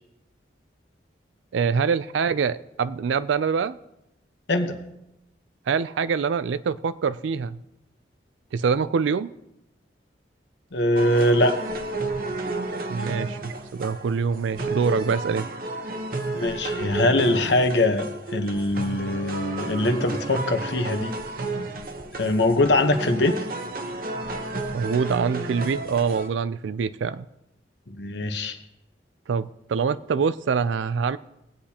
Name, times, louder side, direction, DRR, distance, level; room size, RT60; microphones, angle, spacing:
voice 1, 1.5-3.8 5.7-7.6 8.5-9.3 12.9-15.5 24.7-27.3 29.3-31.2, right 6 dB, 85° right, 14 dB, 0.4 m, -25 dB
voice 2, 10.7-11.6 16.3-21.1 22.2-23.4 27.9-28.6, left 1 dB, 70° left, 6 dB, 1.0 m, -22 dB
sound 1, 11.0-26.3, right 2 dB, 50° right, 0.9 m, -32 dB
21.0 x 8.3 x 2.9 m, 0.90 s
head